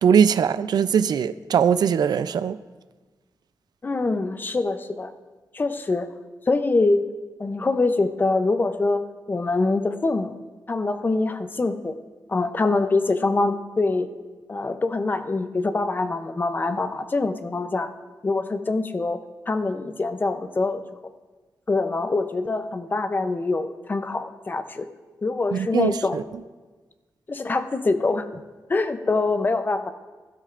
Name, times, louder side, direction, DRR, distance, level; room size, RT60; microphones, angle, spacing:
voice 1, 0.0-2.6 25.5-26.2, right 7 dB, 80° right, 0.4 m, -20 dB
voice 2, 3.8-5.1 5.5-6.1 6.5-7.0 7.4-9.0 9.3-10.4 10.7-11.9 12.3-14.1 14.5-17.9 18.2-19.2 19.5-20.8 21.7-24.9 25.2-26.2 27.3-28.3 28.7-29.9, left 3 dB, 30° left, 0.6 m, -24 dB
15.5 x 12.5 x 2.5 m
wide cardioid pair, 145°, 7 cm